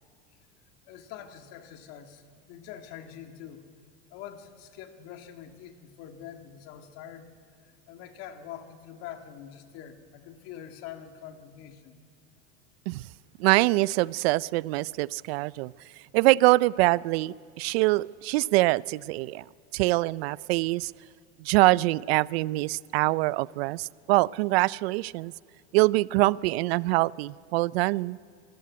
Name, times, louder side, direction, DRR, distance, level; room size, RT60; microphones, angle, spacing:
voice 1, 0.9-3.6 4.1-7.3 7.6-12.0, left 9 dB, 45° left, 6 dB, 1.8 m, -45 dB
voice 2, 13.4-15.7 16.1-19.4 19.7-20.9 21.4-25.3 25.7-28.2, right 20 dB, 60° right, 22 dB, 0.5 m, -24 dB
24.5 x 14.5 x 9.4 m, 2.4 s
supercardioid pair, 150°, 35 cm